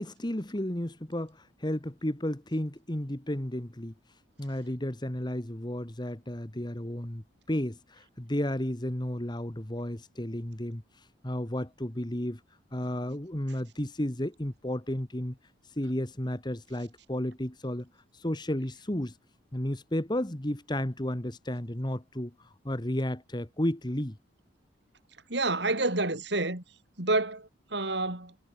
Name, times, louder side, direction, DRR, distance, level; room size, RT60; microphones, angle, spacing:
voice 1, 0.0-3.9 4.4-10.8 11.2-12.4 12.7-15.4 15.8-17.9 18.1-19.1 19.5-24.2, left 1 dB, 20° left, 1.5 m, -33 dB
voice 2, 25.3-26.6 27.0-28.3, right 2 dB, 60° right, 3.5 m, -28 dB
head